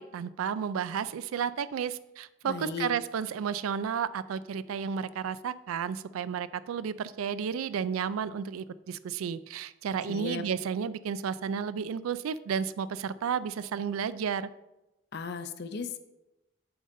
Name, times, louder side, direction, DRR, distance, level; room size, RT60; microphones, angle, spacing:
voice 1, 0.0-14.5, right 7 dB, 90° right, 16 dB, 0.3 m, -32 dB
voice 2, 2.4-2.9 10.1-10.4 15.1-16.0, left 5 dB, 50° left, 10 dB, 0.5 m, -36 dB
7.9 x 5.1 x 3.7 m, 0.97 s
head